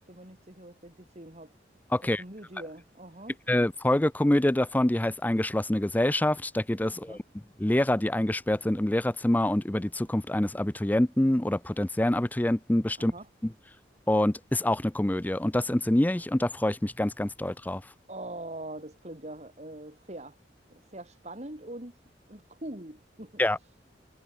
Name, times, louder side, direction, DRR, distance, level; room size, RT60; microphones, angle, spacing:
voice 1, 0.0-1.5 2.2-3.4 6.9-7.2 13.0-13.3 18.1-20.4 20.7-22.0 22.3-23.4, right 1 dB, 40° right, 3.8 m, -43 dB
voice 2, 1.9-2.2 3.5-7.2 7.6-13.1 13.4-13.5 14.1-17.8 23.4-23.6, left 1 dB, 10° left, 0.5 m, -26 dB
head